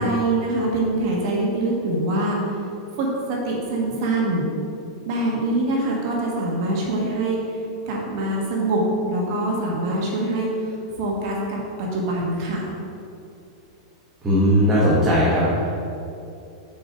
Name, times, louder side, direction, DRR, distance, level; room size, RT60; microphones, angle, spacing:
voice 1, 0.0-2.4 3.0-4.5 5.0-12.7, right 2 dB, 45° right, -2 dB, 1.4 m, -24 dB
voice 2, 14.2-15.7, equal, 10° right, -8 dB, 1.0 m, -18 dB
6.4 x 4.5 x 6.1 m, 2.6 s
supercardioid pair, 165°, 3 cm